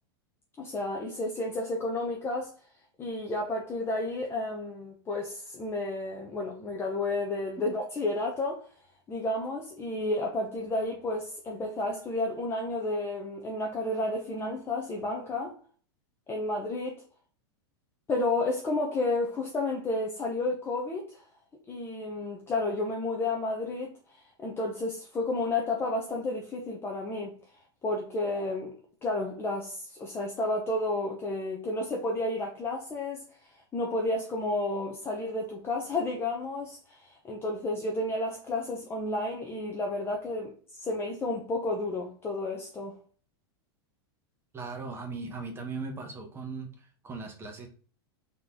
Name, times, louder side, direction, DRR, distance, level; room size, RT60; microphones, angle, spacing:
voice 1, 0.6-2.5 3.0-8.7 9.1-15.6 16.3-17.0 18.1-21.2 21.7-23.9 24.4-27.4 27.8-28.7 29.0-33.3 33.7-43.0, left 2 dB, 15° left, 0.7 m, -31 dB
voice 2, 44.5-47.7, right 4 dB, 15° right, 1.1 m, -38 dB
3.9 x 3.0 x 3.7 m
supercardioid pair, 140°, 14 cm